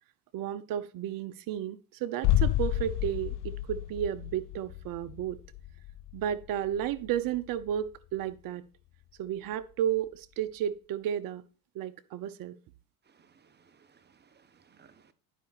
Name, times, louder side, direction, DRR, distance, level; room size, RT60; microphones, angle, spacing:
voice 1, 0.3-5.4 6.1-8.6 9.2-11.4 11.7-12.6, right 10 dB, 50° right, 0.8 m, -33 dB
sound 1, 2.2-8.0 8.2-8.3, left 13 dB, 60° left, 0.8 m, -31 dB
voice 2, 13.1-15.1, right 6 dB, 25° right, 1.1 m, -62 dB
10.5 x 5.0 x 4.1 m
hypercardioid pair, 85°, 44 cm